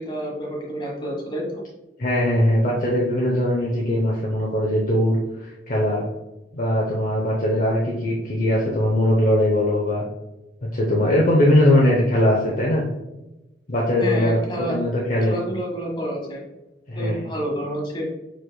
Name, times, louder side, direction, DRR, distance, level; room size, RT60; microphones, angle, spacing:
voice 1, 0.0-1.6 14.0-14.8 15.3-16.4 16.9-18.1, equal, 25° left, -2 dB, 1.4 m, -29 dB
voice 2, 2.0-6.0 6.5-10.0 10.7-12.8 13.7-15.4 16.9-17.2, left 1 dB, 45° left, -3 dB, 0.7 m, -20 dB
4.7 x 4.7 x 2.3 m, 0.98 s
head